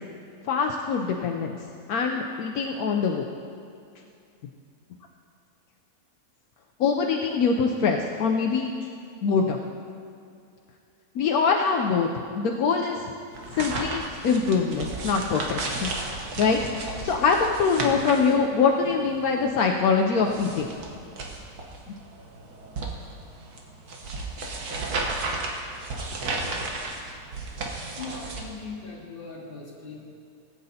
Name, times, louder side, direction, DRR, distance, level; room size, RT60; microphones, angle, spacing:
voice 1, 0.4-1.6 1.9-3.3 6.8-8.7 9.2-9.6 11.1-12.1 12.3-13.0 13.6-15.9 16.4-20.7, left 5 dB, 75° left, 2 dB, 1.1 m, -24 dB
sound 1, 13.3-28.4, right 3 dB, 80° right, 1.6 m, -34 dB
voice 2, 28.0-30.0, left 4 dB, 35° left, -6 dB, 2.2 m, -39 dB
17.5 x 8.7 x 2.7 m, 2.4 s
omnidirectional pair, 1.6 m